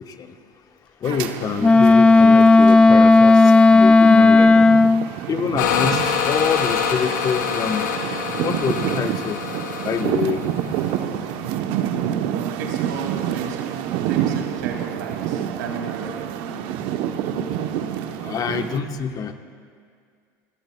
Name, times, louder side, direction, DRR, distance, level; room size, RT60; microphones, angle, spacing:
voice 1, 1.0-3.4 3.7-4.6 5.3-7.9 8.4-9.4 9.8-10.4 18.2-19.3, left 7 dB, 40° left, 6 dB, 1.2 m, -25 dB
sound 1, 1.0-18.8, right 10 dB, 65° right, 0.9 m, -28 dB
Wind instrument woodwind instrument, 1.6-5.1, left 3 dB, 10° left, 0.3 m, -12 dB
sound 2, 5.6-11.0, left 7 dB, 85° left, 1.8 m, -25 dB
voice 2, 12.3-16.3, right 6 dB, 80° right, 2 dB, 2.4 m, -33 dB
29.0 x 17.0 x 2.3 m, 2.1 s
hypercardioid pair, 85°, 10 cm